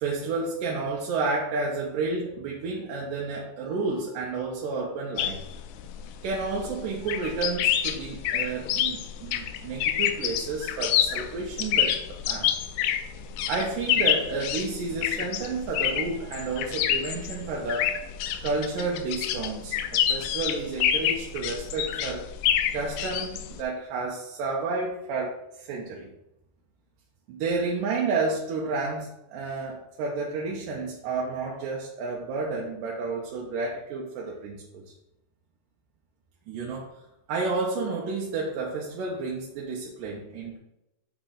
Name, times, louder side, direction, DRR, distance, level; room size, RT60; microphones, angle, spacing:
voice 1, 0.0-5.4 6.2-12.5 13.5-18.0 18.4-22.3 22.7-26.1 27.3-34.8 36.5-37.0 37.3-40.6, right 3 dB, 75° right, -2 dB, 2.4 m, -31 dB
sound 1, 5.2-23.6, left 10 dB, 80° left, 1.9 m, -28 dB
8.2 x 4.3 x 3.8 m, 0.91 s
omnidirectional pair, 4.0 m